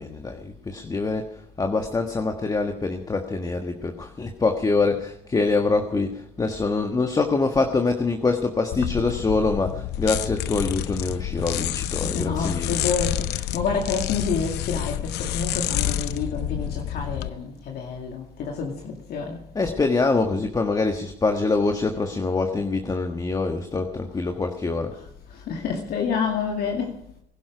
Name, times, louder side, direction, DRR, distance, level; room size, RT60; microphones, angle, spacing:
voice 1, 0.0-12.8 19.5-24.9, left 3 dB, 20° left, 1.4 m, -25 dB
sound 1, 8.7-17.3, left 13 dB, 85° left, 0.7 m, -28 dB
voice 2, 12.0-19.4 25.5-26.9, left 5 dB, 65° left, 2.3 m, -28 dB
20.5 x 11.5 x 5.1 m
cardioid pair, 110°, 17 cm